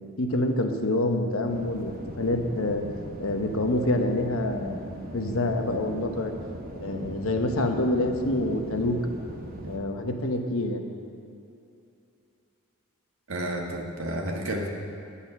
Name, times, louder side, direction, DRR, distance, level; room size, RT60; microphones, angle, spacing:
voice 1, 0.2-2.8 3.2-6.3 6.8-9.0 9.7-10.8, left 1 dB, 75° left, 4 dB, 1.0 m, -27 dB
sound 1, 1.4-9.8, equal, 45° right, 1.0 m, -40 dB
voice 2, 13.3-14.7, right 1 dB, 70° right, 0 dB, 1.5 m, -31 dB
10.0 x 8.3 x 6.0 m, 2.7 s
head